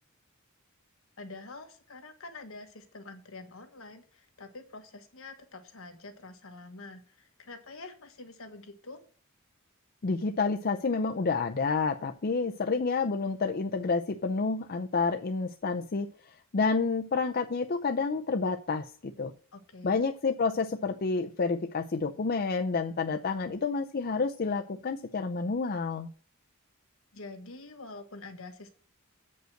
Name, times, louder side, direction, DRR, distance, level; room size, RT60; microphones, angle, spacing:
voice 1, 1.2-9.0 19.5-20.0 27.1-28.7, left 3 dB, 65° left, 1.5 m, -46 dB
voice 2, 10.0-16.1 16.5-19.3 19.8-26.1, left 4 dB, 45° left, 0.5 m, -29 dB
7.9 x 5.4 x 7.7 m
head